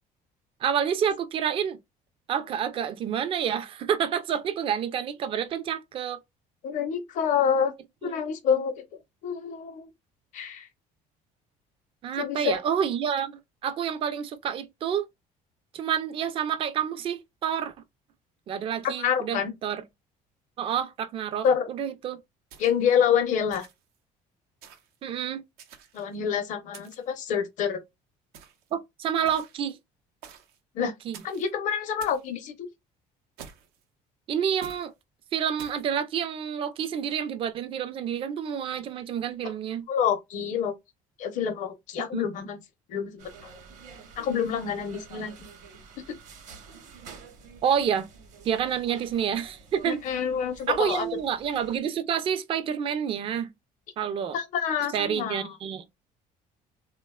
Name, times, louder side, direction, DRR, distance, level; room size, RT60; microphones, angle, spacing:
voice 1, 0.6-1.8 2.3-6.2 12.0-15.0 15.7-17.7 18.5-19.8 20.6-22.2 25.0-25.4 28.7-29.8 30.8-31.2 34.3-34.9 35.3-39.9 42.1-42.2 47.6-48.1 48.4-50.0 50.7-53.5 54.0-54.4 54.9-55.8, right 8 dB, 35° right, 0.4 m, -28 dB
voice 2, 6.6-7.7 8.0-8.8 9.2-9.9 10.3-10.7 12.2-12.6 18.8-19.5 21.4-21.7 22.6-23.7 25.9-27.8 30.7-30.9 31.2-32.5 39.9-40.7 41.2-42.6 42.9-43.3 44.2-45.4 46.1-46.2 49.9-51.1 54.3-55.5, left 7 dB, 55° left, 0.6 m, -27 dB
sound 1, 22.5-23.0 23.5-24.0 24.6-25.0 25.6-26.2 26.7-27.2 28.3-28.7 29.3-29.7 30.2-30.6 31.1-31.5 32.0-32.3 33.4-33.8 34.6-34.9 35.6-35.9, right 7 dB, 85° right, 0.6 m, -48 dB
sound 2, 43.2-51.8, right 5 dB, 55° right, 0.8 m, -49 dB
3.4 x 2.1 x 2.2 m
cardioid pair, 145°, 15 cm